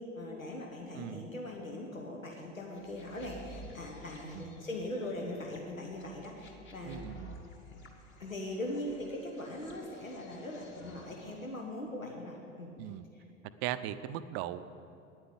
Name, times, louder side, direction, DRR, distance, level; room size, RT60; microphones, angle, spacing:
voice 1, 0.0-7.0 8.2-12.7, left 1 dB, 90° left, 0 dB, 1.2 m, -40 dB
voice 2, 0.9-1.3 4.3-4.6 6.9-7.4 12.8-13.1 13.6-14.7, right 12 dB, 40° right, 13 dB, 0.6 m, -39 dB
sound 1, 2.7-11.5, right 1 dB, 30° left, 1.6 m, -53 dB
9.5 x 8.9 x 8.5 m, 2.8 s
figure-of-eight pair, 75°, 39 cm